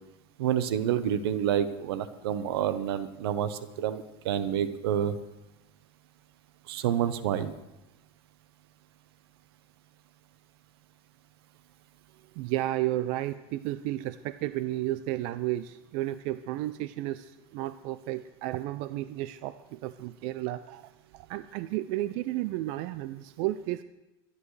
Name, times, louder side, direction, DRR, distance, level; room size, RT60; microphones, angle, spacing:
voice 1, 0.4-5.2 6.7-7.5, right 9 dB, 85° right, 12 dB, 0.9 m, -28 dB
voice 2, 12.4-23.8, right 15 dB, 50° right, 13 dB, 0.4 m, -33 dB
24.5 x 11.0 x 3.2 m, 0.97 s
supercardioid pair, 160°, 13 cm